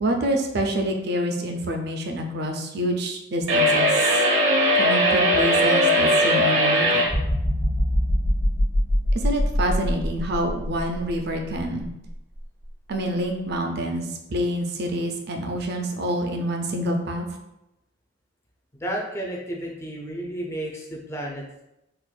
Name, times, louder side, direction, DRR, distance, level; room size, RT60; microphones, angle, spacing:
voice 1, 0.0-4.2 4.8-7.1 9.2-11.9 12.9-17.2, right 1 dB, 50° right, 3 dB, 0.4 m, -27 dB
sound 1, 3.5-7.1, equal, 65° right, 0.9 m, -19 dB
sound 2, 7.1-11.1 11.6-11.8, equal, 35° left, 0.8 m, -23 dB
voice 2, 18.8-21.6, right 1 dB, 15° left, -1 dB, 0.4 m, -32 dB
4.2 x 2.4 x 2.2 m, 0.90 s
head